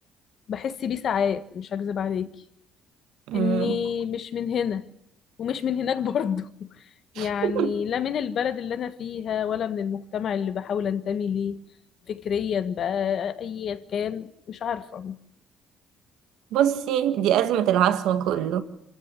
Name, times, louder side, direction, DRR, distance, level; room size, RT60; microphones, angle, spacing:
voice 1, 0.5-2.3 3.3-4.8 5.4-6.7 7.1-11.6 12.1-15.2, left 8 dB, 55° left, 1.5 m, -28 dB
voice 2, 3.3-3.8 7.1-7.7 16.5-18.6, right 10 dB, 80° right, 1.7 m, -23 dB
26.0 x 14.5 x 9.8 m
cardioid pair, 95°, 0 cm